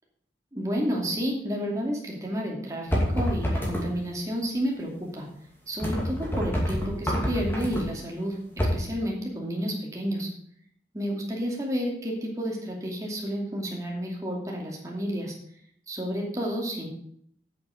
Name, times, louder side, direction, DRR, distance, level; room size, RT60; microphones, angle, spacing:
voice 1, 0.5-5.3 5.7-10.3 10.9-15.3 15.9-16.9, equal, 20° right, -2 dB, 2.5 m, -31 dB
sound 1, 2.9-3.8 5.8-7.8 8.6-8.8, equal, 15° left, 2.5 m, -27 dB
8.3 x 7.5 x 6.4 m, 0.67 s
head